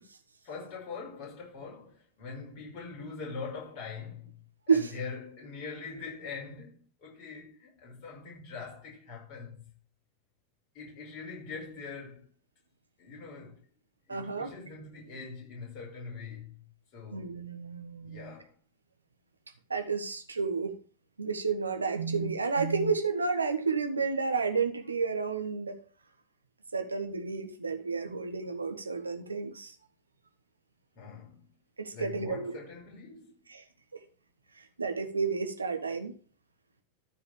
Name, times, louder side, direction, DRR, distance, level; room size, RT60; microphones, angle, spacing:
voice 1, 0.4-4.4 4.7-9.7 10.7-12.3 13.0-13.6 14.1-16.5 16.9-17.3 18.0-18.5 31.0-31.5 31.9-33.3, left 4 dB, 40° left, 5.5 m, -43 dB
voice 2, 14.1-14.5 17.1-18.3 19.7-20.7 21.2-25.8 26.7-29.7 31.8-32.5 33.5-33.6 34.8-36.1, right 5 dB, 75° right, 1.4 m, -31 dB
13.5 x 4.8 x 5.0 m
figure-of-eight pair, 90°, 0 cm